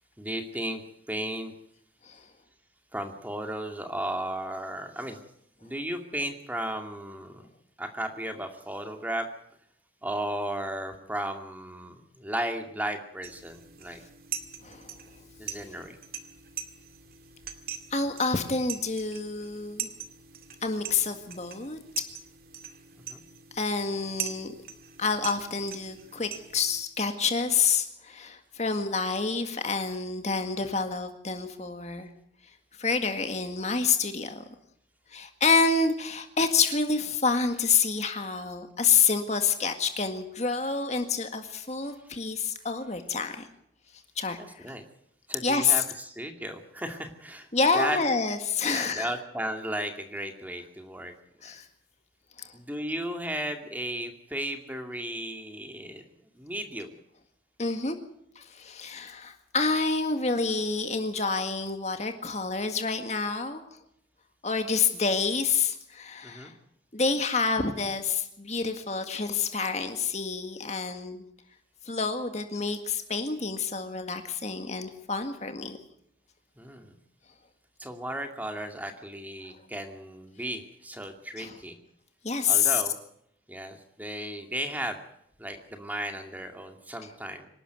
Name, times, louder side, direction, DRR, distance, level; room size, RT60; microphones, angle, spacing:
voice 1, 0.2-0.8 1.1-1.5 2.9-5.2 5.6-7.5 7.8-9.3 10.0-14.0 15.4-16.0 22.9-23.2 44.4-44.8 45.3-47.5 47.7-48.0 48.7-51.1 52.5-56.0 56.4-56.9 66.2-66.5 76.6-76.9 77.8-81.8 82.5-83.0 83.5-85.0 85.4-87.5, right 1 dB, 10° right, 5 dB, 2.4 m, -35 dB
sound 1, 13.2-26.8, right 9 dB, 50° right, 2.2 m, -42 dB
voice 2, 14.6-14.9 17.9-19.9 20.6-22.1 23.5-24.5 25.0-32.1 32.8-34.4 35.1-43.5 44.2-44.7 45.4-45.8 47.5-49.1 51.4-51.7 52.4-52.6 57.6-58.0 58.4-63.6 64.4-66.5 66.9-71.2 71.9-75.8 81.4-81.6 82.2-82.8, left 5 dB, 35° left, 7 dB, 1.9 m, -28 dB
26.0 x 12.0 x 9.1 m, 0.71 s
head